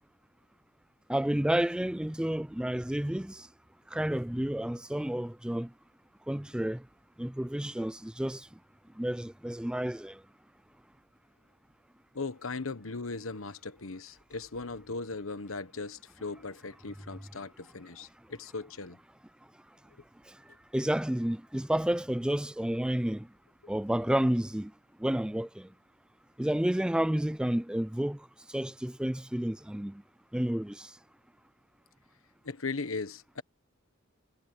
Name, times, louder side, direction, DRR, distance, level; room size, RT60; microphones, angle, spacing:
voice 1, 1.1-3.5 3.9-5.7 6.3-6.8 7.2-8.5 9.0-10.2 20.7-23.3 23.7-24.7 25.0-25.7 26.4-28.2 28.5-30.0 30.3-30.9, right 1 dB, 5° right, 0.4 m, -30 dB
voice 2, 12.1-19.0 32.4-33.4, left 3 dB, 85° left, 1.3 m, -38 dB
head